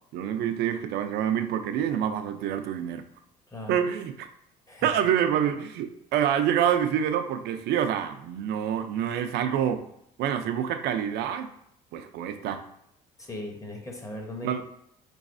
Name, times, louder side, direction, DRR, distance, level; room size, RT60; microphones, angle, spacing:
voice 1, 0.1-3.0 3.7-4.3 4.8-9.8 10.2-11.5 11.9-12.6 14.4-14.6, right 9 dB, 75° right, 8 dB, 0.4 m, -27 dB
voice 2, 13.2-14.6, left 1 dB, 20° left, 2 dB, 0.7 m, -38 dB
4.0 x 3.1 x 2.5 m, 0.74 s
cardioid pair, 110°, 17 cm